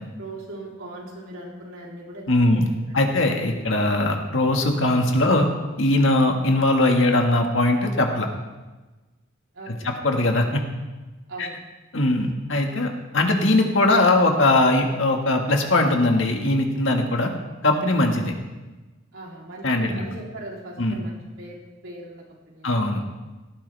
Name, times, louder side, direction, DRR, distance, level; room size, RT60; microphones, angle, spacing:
voice 1, 0.2-3.0 9.5-10.0 11.3-11.6 19.1-21.6 21.8-22.8, right 2 dB, 90° right, -3 dB, 3.5 m, -39 dB
voice 2, 2.3-2.7 2.9-5.5 5.8-8.3 9.7-10.6 11.4-11.5 11.9-17.3 17.6-18.3 19.6-20.1 20.8-21.0 22.6-23.0, left 2 dB, 70° left, 3 dB, 1.8 m, -20 dB
17.5 x 13.5 x 3.5 m, 1.2 s
head